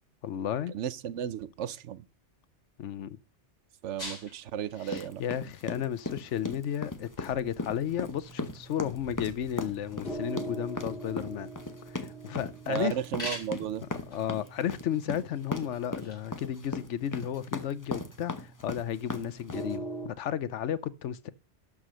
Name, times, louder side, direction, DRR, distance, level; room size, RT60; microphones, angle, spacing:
voice 1, 0.2-0.7 2.8-3.2 4.8-11.5 11.9-13.0 14.1-21.3, left 10 dB, 80° left, 1.0 m, -33 dB
voice 2, 0.7-2.0 3.8-5.2 12.7-13.9, right 9 dB, 75° right, 1.0 m, -34 dB
sound 1, 4.0-16.4, left 1 dB, 35° left, 4.7 m, -48 dB
sound 2, 4.9-19.7, left 2 dB, 20° left, 0.8 m, -37 dB
sound 3, 7.8-20.1, right 2 dB, 55° left, 2.9 m, -44 dB
12.0 x 4.9 x 6.4 m
omnidirectional pair, 1.2 m